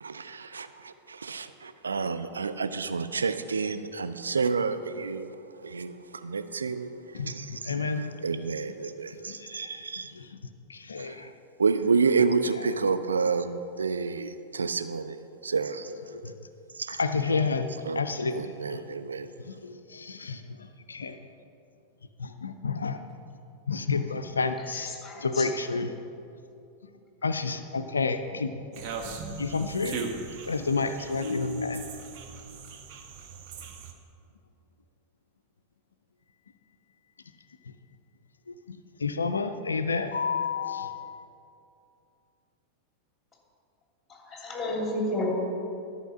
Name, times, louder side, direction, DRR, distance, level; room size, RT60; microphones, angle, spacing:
voice 1, 0.0-5.3 5.6-6.9 7.3-10.1 11.0-11.3 11.6-15.9 16.7-17.0 17.9-18.0 18.3-19.3, right 5 dB, 75° right, 10 dB, 0.4 m, -29 dB
voice 2, 7.1-8.1 9.3-9.9 10.1-10.4 10.7-11.3 12.6-12.7 16.1-16.3 17.0-17.7 17.9-18.8 19.4-21.2 22.2-23.0 23.7-24.9 25.2-25.9 27.2-28.8 29.4-30.0 30.5-32.1 37.7-37.8 38.5-41.3, left 4 dB, 75° left, 9 dB, 0.4 m, -30 dB
voice 3, 24.7-25.5 44.1-45.3, left 1 dB, 15° left, -1 dB, 2.6 m, -32 dB
sound 1, 28.7-33.9, right 4 dB, 45° right, 1.0 m, -39 dB
12.5 x 5.6 x 6.1 m, 2.6 s
figure-of-eight pair, 90°, 0 cm